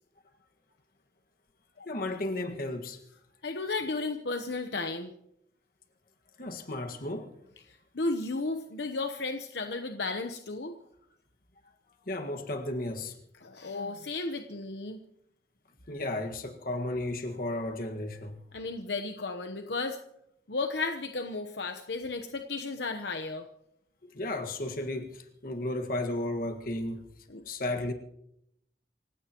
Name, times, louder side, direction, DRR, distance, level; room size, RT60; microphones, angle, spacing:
voice 1, 1.8-3.0 6.4-7.3 12.1-13.2 15.9-18.4 24.1-27.0 27.5-27.9, left 1 dB, 55° left, 1.7 m, -34 dB
voice 2, 3.4-5.1 7.7-10.8 13.4-15.0 18.5-20.0 20.5-23.5 27.3-27.4, left 3 dB, 70° left, 1.0 m, -34 dB
28.0 x 16.5 x 3.0 m
head